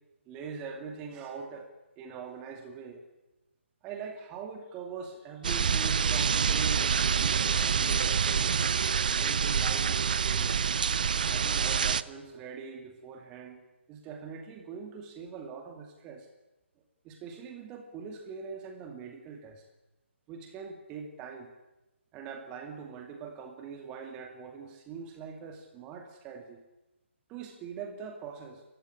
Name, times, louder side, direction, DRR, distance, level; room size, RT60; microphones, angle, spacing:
voice 1, 0.3-3.0 3.8-8.5 9.2-10.6 11.3-13.6 13.9-16.3 17.0-19.6 20.3-21.5 22.1-26.6 27.3-28.6, right 6 dB, 15° right, 4 dB, 2.3 m, -43 dB
sound 1, 5.4-12.0, right 6 dB, 40° right, 0.8 m, -27 dB
28.0 x 15.0 x 9.8 m, 1.0 s
figure-of-eight pair, 145°, 7 cm